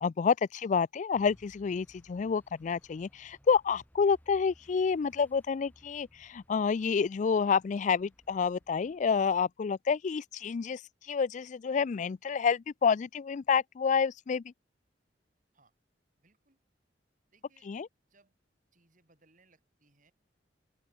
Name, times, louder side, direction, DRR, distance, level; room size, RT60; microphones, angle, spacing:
voice 1, 0.0-10.8 11.1-14.4 17.7-17.9, left 6 dB, 40° left, 0.3 m, -29 dB
sound 1, 1.1-9.4, equal, 10° left, 2.6 m, -63 dB
voice 2, 16.2-16.6 17.3-17.7 18.1-18.3 18.7-20.1, right 3 dB, 45° right, 5.6 m, -67 dB
open air
head